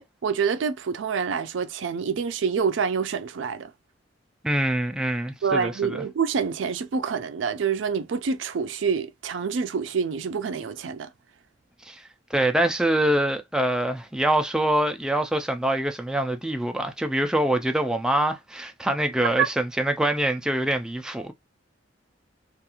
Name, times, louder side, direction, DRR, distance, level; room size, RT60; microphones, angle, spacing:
voice 1, 0.0-3.7 5.4-11.1 19.4-19.5, right 6 dB, 75° right, 0.4 m, -27 dB
voice 2, 4.4-6.0 11.9-12.0 12.3-21.3, right 1 dB, 5° right, 0.3 m, -24 dB
2.4 x 2.3 x 2.8 m
head